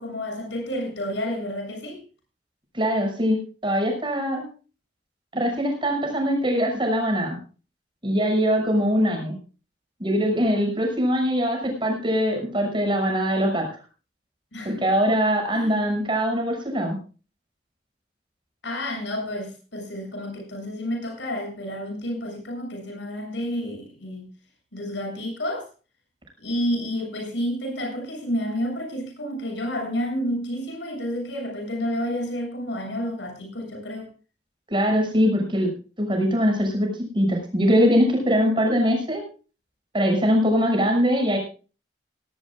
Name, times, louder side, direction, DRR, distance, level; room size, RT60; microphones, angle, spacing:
voice 1, 0.0-2.0 14.5-14.8 15.5-15.7 18.6-24.3 24.7-25.7 26.4-34.1, equal, 80° left, 2 dB, 7.5 m, -30 dB
voice 2, 2.7-4.5 5.3-7.4 8.0-9.3 10.0-13.7 14.6-17.0 34.7-35.7 36.0-39.2 39.9-41.4, equal, 25° right, 3 dB, 6.3 m, -22 dB
18.0 x 18.0 x 2.4 m, 0.36 s
head